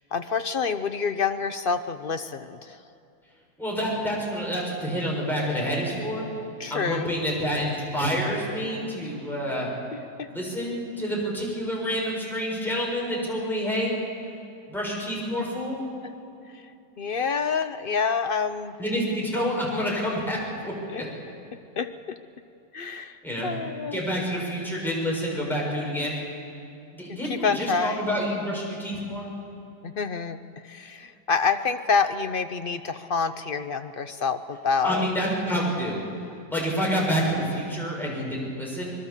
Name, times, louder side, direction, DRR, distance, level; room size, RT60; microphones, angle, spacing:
voice 1, 0.1-2.8 6.6-7.1 9.9-10.3 16.5-16.6 17.0-18.8 20.9-21.0 21.8-22.2 22.7-24.0 27.2-28.1 29.8-35.1, left 5 dB, 60° left, 9 dB, 0.5 m, -27 dB
voice 2, 3.6-6.2 6.7-9.7 10.3-13.9 14.7-15.8 18.8-20.7 23.2-23.5 23.9-26.2 26.9-29.3 34.8-36.0 36.5-38.9, equal, ahead, -4 dB, 6.7 m, -28 dB
25.0 x 22.0 x 7.3 m, 2.7 s
omnidirectional pair, 1.8 m